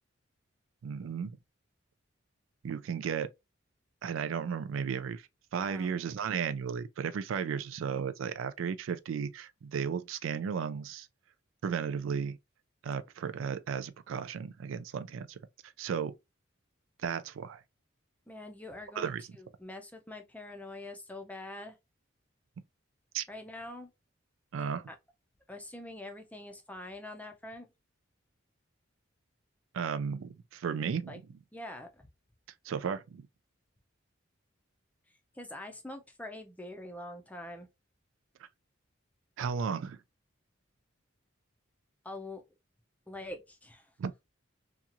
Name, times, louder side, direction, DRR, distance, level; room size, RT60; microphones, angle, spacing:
voice 1, 0.8-1.4 2.6-3.3 4.0-5.2 5.5-11.1 11.6-12.4 12.8-15.4 15.8-16.1 17.0-17.6 19.0-19.2 23.1-23.2 24.5-24.9 29.7-31.2 32.6-33.2 39.4-40.0 44.0-44.2, right 6 dB, 80° right, 0.3 m, -34 dB
voice 2, 18.3-21.8 23.3-23.9 24.9-25.0 25.5-27.7 31.1-31.2 31.5-32.1 35.3-37.7 42.0-42.4 43.1-43.9, left 1 dB, 10° left, 0.5 m, -44 dB
2.9 x 2.4 x 2.4 m
head